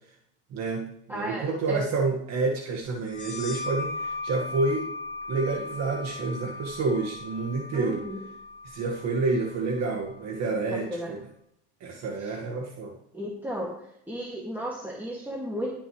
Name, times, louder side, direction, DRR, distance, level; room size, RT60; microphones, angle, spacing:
voice 1, 0.5-4.9 5.3-8.0 8.6-11.2 11.8-13.0, right 3 dB, 50° right, 0 dB, 1.9 m, -29 dB
voice 2, 1.1-1.8 7.7-8.2 10.7-11.1 12.2-12.3 13.1-13.7 14.1-15.7, equal, 5° right, -3 dB, 2.2 m, -34 dB
sound 1, 3.0-10.3, left 3 dB, 25° right, 4.0 m, -38 dB
18.5 x 6.4 x 3.2 m, 0.74 s
supercardioid pair, 100°, 34 cm